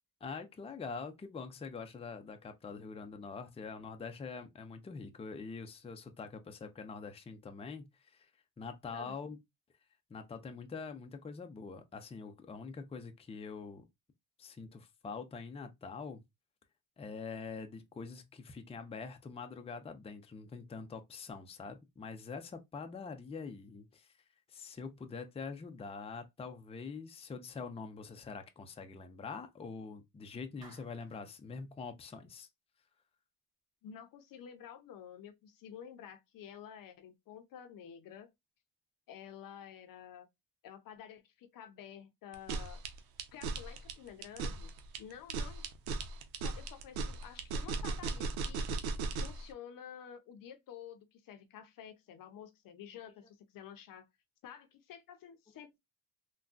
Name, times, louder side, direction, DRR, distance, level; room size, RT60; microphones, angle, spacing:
voice 1, 0.2-8.3 8.6-9.4 10.1-13.8 14.4-16.2 17.0-24.1 24.5-32.5, left 5 dB, 15° left, 0.5 m, -45 dB
Clapping, 30.6-31.3, right 2 dB, 10° right, 2.0 m, -58 dB
voice 2, 33.8-38.3 39.1-40.3 40.6-42.8 43.3-45.7 46.3-48.7 49.1-54.1 54.4-55.8, left 9 dB, 65° left, 0.7 m, -51 dB
sound 1, 42.3-49.4, right 3 dB, 85° right, 0.7 m, -37 dB
3.5 x 2.2 x 2.4 m
cardioid pair, 90°, 36 cm